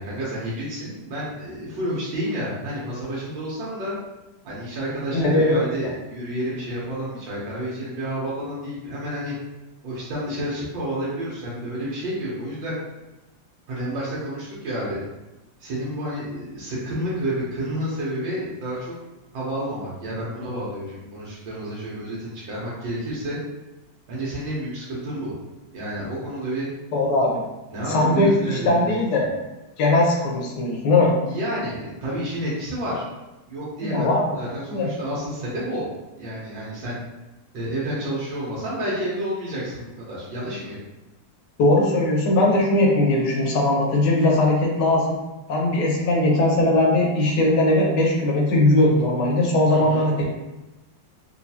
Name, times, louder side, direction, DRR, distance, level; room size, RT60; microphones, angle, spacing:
voice 1, 0.0-3.9 4.4-9.3 9.8-12.7 13.7-15.0 15.6-18.9 19.3-23.4 24.1-25.3 25.7-26.7 27.7-29.3 31.2-33.0 33.5-35.8 36.2-37.0 37.5-40.8 49.7-50.1, right 1 dB, 85° right, -7 dB, 1.6 m, -30 dB
voice 2, 5.1-5.6 26.9-27.4 27.9-29.3 29.8-31.1 33.8-34.2 34.7-34.9 41.6-45.2 45.5-50.3, left 2 dB, 70° left, -1 dB, 1.3 m, -19 dB
4.2 x 2.3 x 2.8 m, 1.0 s
omnidirectional pair, 2.0 m